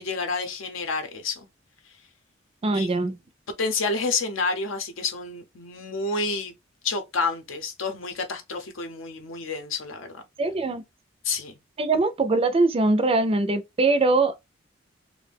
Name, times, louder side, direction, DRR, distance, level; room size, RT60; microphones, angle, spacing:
voice 1, 0.0-1.4 2.7-3.0 3.6-6.5 6.8-10.2 11.2-11.6, left 4 dB, 75° left, 0.7 m, -29 dB
voice 2, 2.6-3.2 10.4-10.8 11.8-14.4, right 3 dB, 30° right, 0.4 m, -22 dB
2.6 x 2.1 x 3.3 m
head